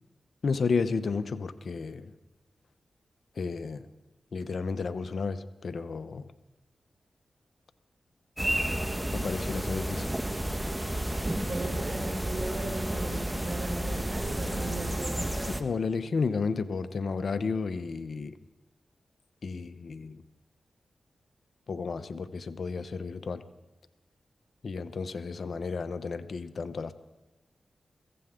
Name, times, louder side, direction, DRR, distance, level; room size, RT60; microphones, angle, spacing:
voice 1, 0.4-2.1 3.4-3.8 4.3-6.3 9.1-10.0 15.6-18.4 19.4-20.2 21.7-23.4 24.6-26.9, left 4 dB, 65° left, 12 dB, 0.9 m, -32 dB
sound 1, 8.4-15.6, right 1 dB, 10° right, 1.5 m, -31 dB
voice 2, 11.3-15.4, right 2 dB, 65° right, -1 dB, 5.8 m, -37 dB
22.5 x 15.5 x 3.8 m, 1.0 s
supercardioid pair, 40°, 0 cm